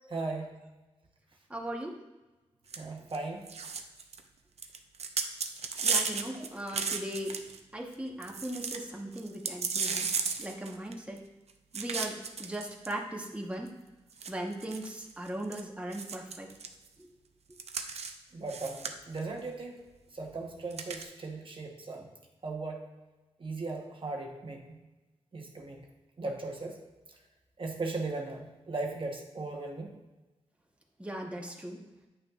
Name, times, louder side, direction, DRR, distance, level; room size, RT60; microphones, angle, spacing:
voice 1, 0.1-0.5 2.8-3.5 6.3-6.5 18.3-19.8 20.1-22.1 22.4-22.8 23.4-24.8 25.3-25.8 26.2-26.8 27.6-30.0, right 3 dB, 50° right, 0 dB, 1.1 m, -37 dB
voice 2, 1.5-2.0 5.8-7.3 7.7-10.1 10.4-11.2 11.7-13.7 14.3-16.5 17.0-17.1 31.0-31.8, right 1 dB, 10° right, 0 dB, 1.1 m, -38 dB
sound 1, 2.7-2.8 3.1-3.2 3.5-4.2 4.6-7.6 7.9-8.0 8.2-8.8 9.1-11.2 11.7-12.9 13.7-13.8 14.2-15.6 15.9-16.7 17.6-18.1 18.5-19.2 20.7-21.0, right 5 dB, 70° right, 0.6 m, -34 dB
8.9 x 6.4 x 2.4 m, 1.1 s
cardioid pair, 55°, 11 cm